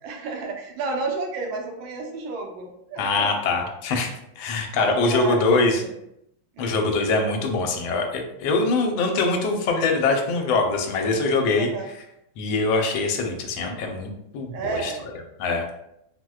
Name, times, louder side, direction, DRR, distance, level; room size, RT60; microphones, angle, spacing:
voice 1, 0.0-3.3 4.8-5.9 6.6-6.9 11.6-11.9 14.5-15.1, right 4 dB, 80° right, 2 dB, 1.4 m, -31 dB
voice 2, 3.0-4.1 4.4-5.8 6.6-11.7 12.4-14.9 15.4-15.6, left 3 dB, 80° left, 3 dB, 1.3 m, -23 dB
4.6 x 2.1 x 2.3 m, 0.79 s
omnidirectional pair, 2.2 m